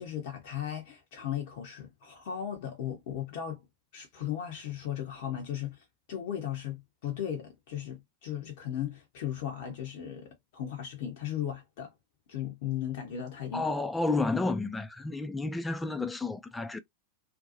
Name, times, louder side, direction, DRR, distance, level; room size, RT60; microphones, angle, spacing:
voice 1, 0.0-3.6 3.9-11.9 12.3-13.7, left 10 dB, 50° left, 0.6 m, -36 dB
voice 2, 13.5-16.8, left 3 dB, 10° left, 0.3 m, -31 dB
2.6 x 2.2 x 2.5 m
figure-of-eight pair, 90°, 0 cm